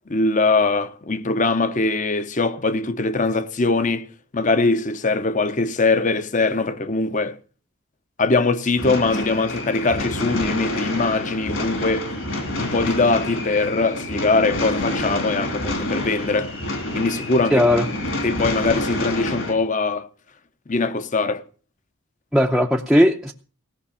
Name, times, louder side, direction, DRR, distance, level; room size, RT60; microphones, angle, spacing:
voice 1, 0.1-4.1 4.3-7.4 8.2-12.1 12.6-16.5 16.9-17.6 18.2-20.1 20.7-21.4, left 3 dB, 35° left, 0.8 m, -21 dB
sound 1, 8.8-19.5, left 1 dB, 60° left, 3.1 m, -28 dB
voice 2, 17.5-17.9 22.3-23.3, equal, ahead, 0.6 m, -17 dB
17.0 x 5.9 x 8.5 m
head